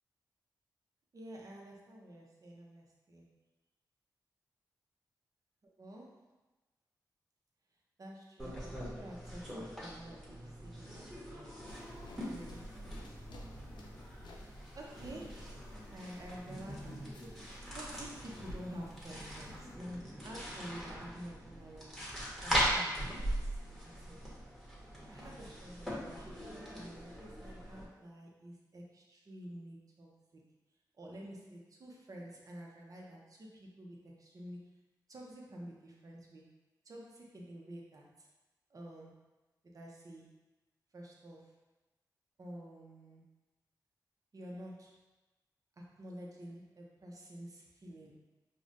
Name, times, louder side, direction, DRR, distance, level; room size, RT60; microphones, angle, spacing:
voice 1, 1.1-3.3 5.6-6.2 8.0-11.7 12.1-13.5 14.7-15.5 15.9-22.1 22.4-23.6 23.9-24.2 25.1-30.4 30.9-34.8 35.1-36.5 36.8-38.3 38.7-39.2 39.7-40.3 40.9-41.6 42.4-43.3 44.3-45.0 45.8-48.2, right 1 dB, 50° right, -2 dB, 0.7 m, -50 dB
sound 1, 8.4-27.9, equal, ahead, 1.1 m, -41 dB
sound 2, 11.7-19.7, left 1 dB, 90° left, 0.4 m, -53 dB
4.9 x 2.2 x 2.5 m, 1.1 s
cardioid pair, 65°, 8 cm